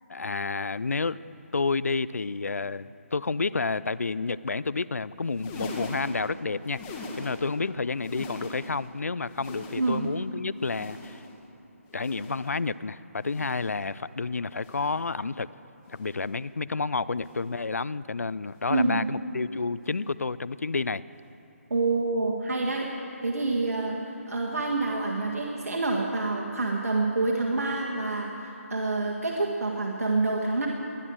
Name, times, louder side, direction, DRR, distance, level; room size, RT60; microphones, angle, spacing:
voice 1, 0.1-1.2 1.5-11.2 11.9-15.5 15.9-21.0, left 4 dB, 85° left, 18 dB, 0.4 m, -30 dB
sound 1, 5.2-7.6 7.9-8.9 9.2-10.2 10.6-11.4 11.9-12.6 13.2-13.9 14.5-15.1 15.8-16.4 17.2-17.6 18.5-18.8 19.8-20.0 21.2-21.3, left 2 dB, 20° left, 1.8 m, -42 dB
voice 2, 18.7-19.0 21.7-22.9 23.2-24.0 24.3-30.7, right 3 dB, 75° right, -1 dB, 1.7 m, -27 dB
20.5 x 11.0 x 6.3 m, 2.9 s
figure-of-eight pair, 150°, 8 cm